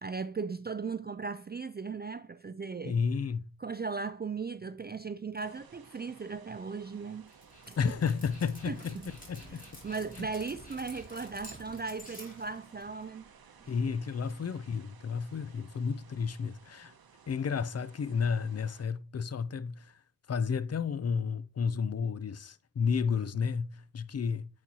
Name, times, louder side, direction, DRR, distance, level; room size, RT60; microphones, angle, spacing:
voice 1, 0.0-3.0 3.6-7.3 7.7-7.8 8.7-8.8 9.5-13.3 13.6-13.7, right 4 dB, 30° right, 0.3 m, -37 dB
voice 2, 2.8-3.5 7.8-9.6 10.2-10.3 13.7-16.9 17.3-20.0 20.3-24.5, left 6 dB, 45° left, 0.5 m, -32 dB
sound 1, 5.4-18.9, right 6 dB, 80° right, 0.8 m, -58 dB
Dog, 7.3-13.1, equal, 20° left, 2.6 m, -50 dB
8.5 x 4.1 x 2.8 m
cardioid pair, 40°, 36 cm